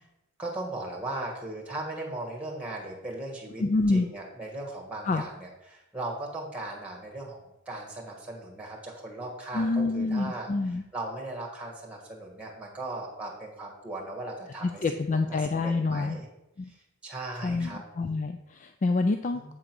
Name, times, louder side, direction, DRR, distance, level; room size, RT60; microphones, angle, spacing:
voice 1, 0.4-14.8 15.1-16.3 16.7-16.8 17.0-17.8 19.3-19.5, right 2 dB, 5° right, -1 dB, 1.6 m, -38 dB
voice 2, 3.6-4.1 5.0-5.2 9.5-10.8 14.8-16.2 16.6-16.7 17.4-19.5, left 3 dB, 35° left, 7 dB, 0.3 m, -27 dB
8.0 x 3.8 x 6.0 m, 0.92 s
head